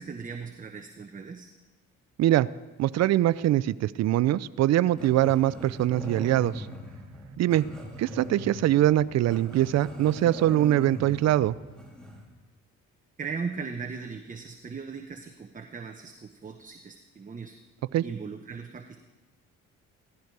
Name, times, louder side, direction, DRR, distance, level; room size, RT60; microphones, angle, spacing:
voice 1, 0.0-1.5 13.2-17.6 18.0-19.0, right 5 dB, 25° right, 5 dB, 1.0 m, -38 dB
voice 2, 2.8-6.7 7.4-7.7 8.0-11.5 17.9-18.0, right 13 dB, 60° right, 16 dB, 0.5 m, -23 dB
Growling, 4.9-12.3, equal, 5° left, 3.2 m, -41 dB
16.5 x 13.0 x 4.7 m, 1.1 s
cardioid pair, 90°, 30 cm